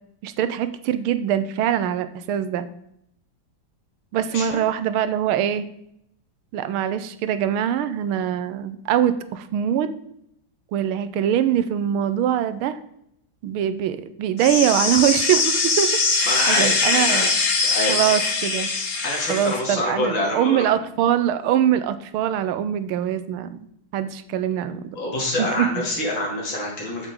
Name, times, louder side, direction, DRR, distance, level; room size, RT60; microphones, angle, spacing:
voice 1, 0.2-2.7 4.1-5.7 6.5-9.9 10.7-12.8 13.4-17.3 17.9-18.7 19.3-25.0 25.4-25.8, right 10 dB, 85° right, 12 dB, 1.5 m, -23 dB
sound 1, 14.4-19.6, left 4 dB, 45° left, 1.8 m, -22 dB
voice 2, 16.3-17.3 17.6-18.0 19.0-20.7 24.9-27.1, left 1 dB, 65° left, -3 dB, 3.3 m, -26 dB
8.2 x 7.4 x 3.7 m, 0.75 s
omnidirectional pair, 2.3 m